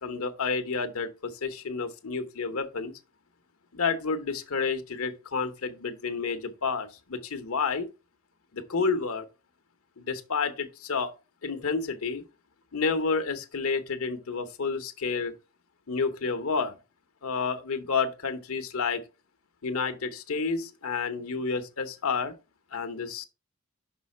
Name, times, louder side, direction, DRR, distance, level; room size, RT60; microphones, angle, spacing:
voice 1, 0.0-2.9 3.7-7.9 8.5-9.2 10.0-11.1 11.4-12.2 12.7-15.3 15.9-16.7 17.2-19.0 19.6-22.3 22.7-23.2, left 4 dB, 85° left, 0.9 m, -30 dB
5.7 x 5.4 x 4.2 m
head